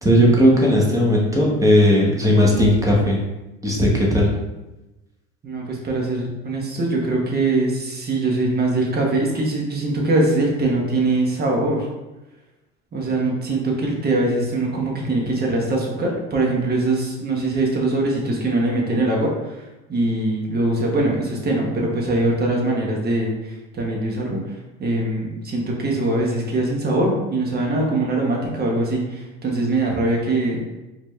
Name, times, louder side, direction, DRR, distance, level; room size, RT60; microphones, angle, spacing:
voice 1, 0.0-3.2 3.6-4.3, equal, 10° right, -3 dB, 1.2 m, -16 dB
voice 2, 5.4-11.9 12.9-30.8, right 2 dB, 30° right, -1 dB, 1.3 m, -22 dB
4.4 x 2.7 x 3.2 m, 1.0 s
supercardioid pair, 95°, 31 cm